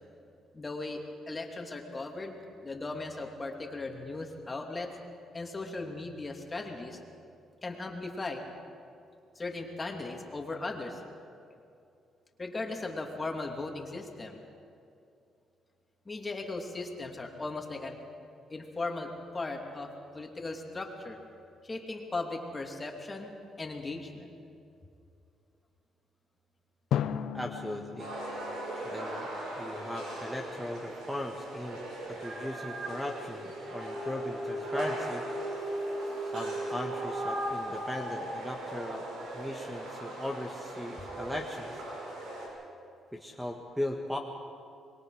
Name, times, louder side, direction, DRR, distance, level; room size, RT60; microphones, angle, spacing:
voice 1, 0.5-2.4 2.6-4.9 5.3-7.0 7.6-8.4 9.3-11.0 12.4-14.4 16.0-18.0 18.5-21.2 21.6-24.3 28.8-28.9, left 3 dB, 25° left, 2 dB, 2.8 m, -37 dB
Drum, 26.9-29.8, left 9 dB, 75° left, 0.8 m, -36 dB
voice 2, 27.3-28.1 28.8-29.3 29.6-31.8 32.1-35.3 36.3-39.1 39.3-41.8 43.1-44.2, left 1 dB, 5° right, 2 dB, 1.6 m, -38 dB
sound 1, 28.0-42.5, right 1 dB, 90° right, 6.2 m, -40 dB
sound 2, 32.2-33.0 33.5-37.5, right 1 dB, 45° right, 4.1 m, -36 dB
25.5 x 22.0 x 5.0 m, 2.6 s
cardioid pair, 90°, 0 cm